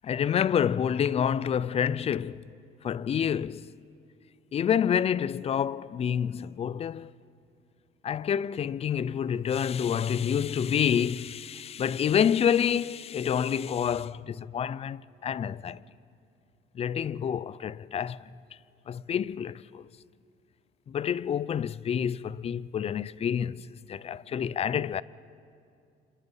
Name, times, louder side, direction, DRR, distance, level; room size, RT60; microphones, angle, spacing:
voice 1, 0.0-2.4 2.8-3.7 4.5-7.1 8.0-15.8 16.7-18.3 18.9-19.9 20.9-25.0, left 8 dB, 35° left, 0.5 m, -28 dB
29.5 x 27.0 x 5.6 m
cardioid pair, 110°, 17 cm